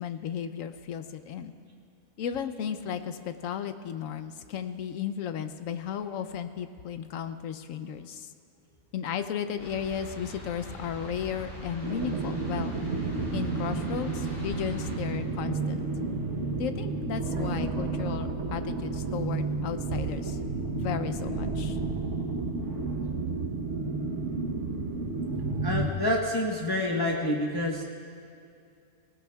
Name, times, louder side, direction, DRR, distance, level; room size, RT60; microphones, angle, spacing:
voice 1, 0.0-1.5 2.2-8.3 8.9-12.8 13.3-15.9 16.6-20.4 20.7-21.8, left 8 dB, 75° left, 9 dB, 1.0 m, -34 dB
sound 1, 9.6-14.9, equal, 45° left, 4.3 m, -42 dB
sound 2, 11.8-25.9, right 3 dB, 60° right, 1.4 m, -31 dB
voice 2, 25.6-27.8, left 1 dB, 20° left, -2 dB, 0.9 m, -28 dB
18.0 x 18.0 x 2.3 m, 2.5 s
omnidirectional pair, 1.4 m